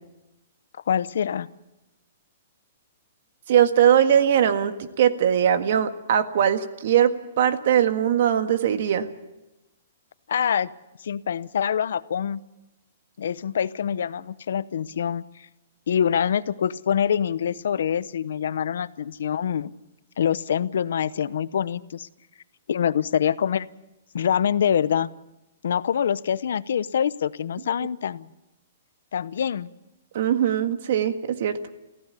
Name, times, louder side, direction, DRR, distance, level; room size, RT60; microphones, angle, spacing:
voice 1, 0.9-1.5 10.3-10.7 11.0-12.4 13.2-15.2 15.9-19.7 20.2-22.1 22.7-23.7 24.1-25.1 25.6-28.3 29.1-29.7, left 8 dB, 75° left, 16 dB, 0.8 m, -25 dB
voice 2, 3.5-7.1 7.4-9.1 30.1-31.6, right 9 dB, 55° right, 9 dB, 1.7 m, -20 dB
24.5 x 15.5 x 8.4 m, 0.98 s
hypercardioid pair, 160°, 0 cm